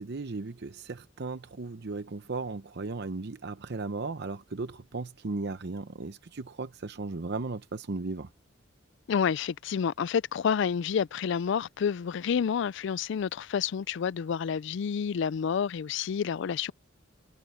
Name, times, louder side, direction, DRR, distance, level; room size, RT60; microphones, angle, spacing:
voice 1, 0.0-8.3, right 3 dB, 60° right, 0.7 m, -36 dB
voice 2, 9.1-16.7, left 7 dB, 65° left, 0.4 m, -29 dB
head